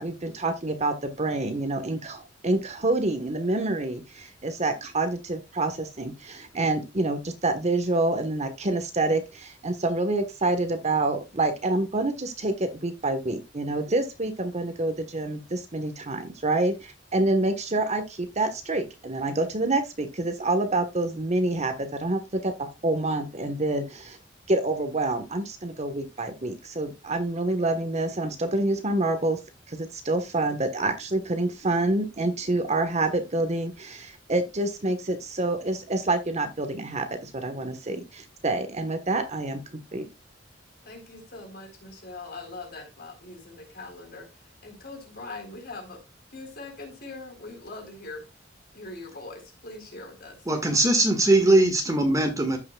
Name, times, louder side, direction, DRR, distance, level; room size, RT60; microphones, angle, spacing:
voice 1, 0.0-24.2 24.5-29.4 29.7-40.1, right 2 dB, 35° right, 1.2 m, -27 dB
voice 2, 40.8-44.3 44.6-46.0 46.3-48.2 48.7-50.5, left 3 dB, 55° left, 3.9 m, -41 dB
voice 3, 50.5-52.6, right 2 dB, 20° right, 1.6 m, -20 dB
14.5 x 5.8 x 2.3 m
head